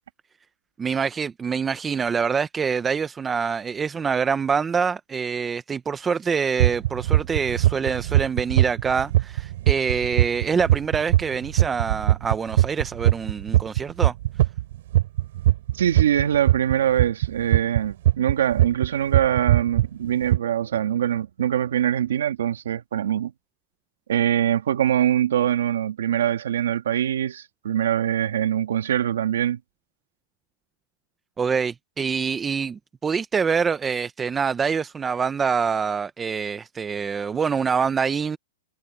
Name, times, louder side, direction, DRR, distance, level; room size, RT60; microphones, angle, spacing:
voice 1, 0.8-14.1 31.4-38.4, right 6 dB, 15° right, 0.7 m, -25 dB
sound 1, 6.6-18.9 19.1-19.9 20.3-20.4, right 14 dB, 65° right, 3.5 m, -20 dB
voice 2, 15.7-23.3 24.1-29.6, right 10 dB, 80° right, 1.8 m, -23 dB
hypercardioid pair, 150°, 0 cm